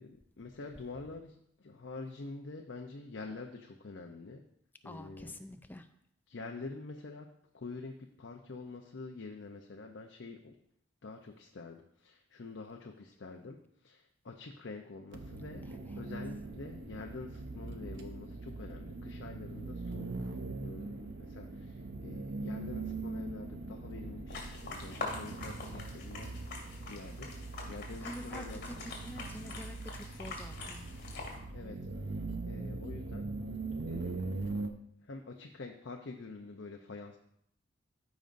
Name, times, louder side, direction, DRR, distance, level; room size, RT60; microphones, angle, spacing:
voice 1, 0.0-4.4 4.8-5.4 6.3-7.3 7.5-10.5 11.0-15.6 16.0-20.4 20.6-26.3 26.8-27.3 27.7-28.8 31.5-32.1 32.5-33.3 33.8-34.6 35.0-37.2, left 3 dB, 70° left, 3 dB, 0.6 m, -46 dB
voice 2, 4.8-5.9 28.0-28.6 29.0-31.0, left 1 dB, 10° left, 9 dB, 0.4 m, -47 dB
sound 1, 15.1-34.7, right 3 dB, 65° right, 0.8 m, -41 dB
sound 2, 24.3-31.4, left 3 dB, 55° left, 2.3 m, -44 dB
14.5 x 5.2 x 2.6 m, 0.74 s
head